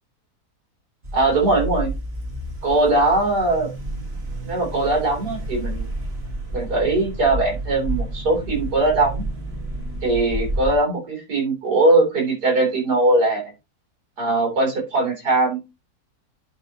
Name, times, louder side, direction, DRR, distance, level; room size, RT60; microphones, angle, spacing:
sound 1, 1.0-10.8, right 1 dB, 40° right, 2.0 m, -30 dB
voice 1, 1.1-1.9 2.6-3.7 4.4-5.9 6.5-9.2 10.0-13.5 14.2-15.6, right 2 dB, 75° right, 0 dB, 4.2 m, -20 dB
11.0 x 5.6 x 3.0 m, 0.24 s
omnidirectional pair, 1.7 m